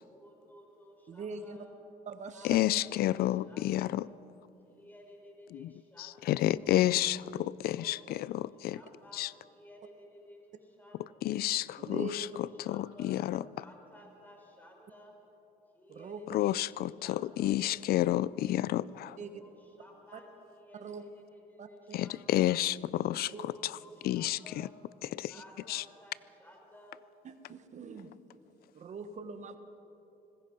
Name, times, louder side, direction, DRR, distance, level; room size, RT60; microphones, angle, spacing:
voice 1, 0.0-1.7 2.3-4.1 4.7-6.8 7.7-11.2 11.8-15.1 15.7-17.9 18.8-22.3 23.2-24.7 25.3-27.0, equal, 10° left, 0 dB, 5.0 m, -55 dB
voice 2, 1.1-1.6 2.0-2.6 11.8-12.3 15.9-16.2 19.2-19.4 20.1-20.2 20.8-21.0 21.6-22.0 23.1-23.5 27.2-28.1 28.7-29.6, right 4 dB, 45° right, 9 dB, 1.3 m, -43 dB
voice 3, 2.4-4.1 5.5-5.7 6.0-8.8 9.1-9.3 11.2-12.3 12.7-13.4 16.3-19.2 21.9-23.3 23.6-23.7 24.0-24.4 25.1-25.3 25.7-25.8, left 14 dB, 65° left, 20 dB, 0.4 m, -30 dB
25.0 x 20.5 x 5.3 m, 2.9 s
cardioid pair, 110°, 17 cm